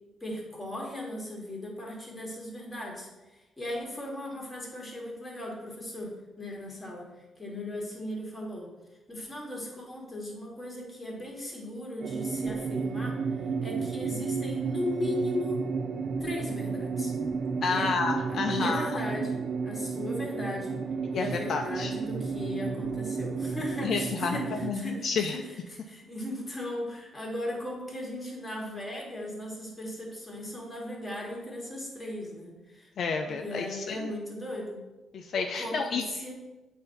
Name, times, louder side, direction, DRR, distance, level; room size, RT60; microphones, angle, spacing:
voice 1, 0.2-7.1 7.4-8.7 9.1-13.2 13.6-15.6 16.2-17.1 17.7-17.9 18.3-20.8 21.1-32.9 33.3-34.8 35.5-36.3, left 1 dB, 10° left, -2 dB, 1.7 m, -37 dB
sound 1, 12.0-24.7, right 5 dB, 55° right, 0.3 m, -32 dB
voice 2, 17.6-18.9 21.1-21.9 23.8-25.4 33.0-34.1 35.1-36.0, left 4 dB, 55° left, 3 dB, 0.5 m, -30 dB
7.8 x 2.7 x 5.4 m, 1.1 s
cardioid pair, 125°, 0 cm